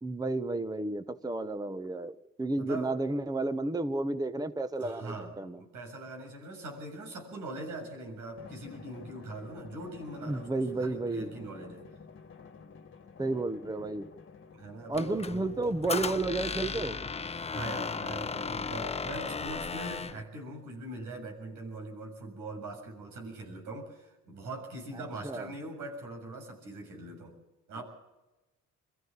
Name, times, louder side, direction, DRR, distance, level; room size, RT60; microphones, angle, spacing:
voice 1, 0.0-5.6 10.2-11.3 13.2-14.1 14.9-17.0 25.2-25.5, right 2 dB, 15° right, 11 dB, 1.0 m, -32 dB
voice 2, 2.5-2.9 4.8-10.5 10.8-11.8 14.5-15.5 17.5-27.4 27.7-27.8, right 2 dB, 90° right, 1 dB, 7.0 m, -42 dB
Drum, 8.4-19.4, left 5 dB, 40° left, 1.7 m, -52 dB
Squeak, 14.9-20.2, left 5 dB, 20° left, 0.7 m, -36 dB
24.5 x 14.5 x 7.2 m, 1.0 s
cardioid pair, 90°, 30 cm